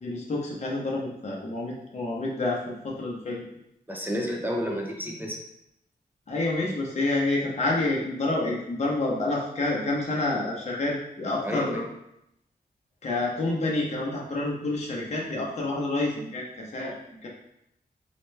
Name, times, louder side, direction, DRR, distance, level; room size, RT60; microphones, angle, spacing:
voice 1, 0.0-3.4 6.3-11.8 13.0-16.9 17.2-17.3, left 2 dB, 45° left, -4 dB, 0.7 m, -28 dB
voice 2, 3.9-5.4 11.4-11.8, equal, 10° right, -1 dB, 0.4 m, -30 dB
3.2 x 2.9 x 3.2 m, 0.79 s
wide cardioid pair, 175°, 17 cm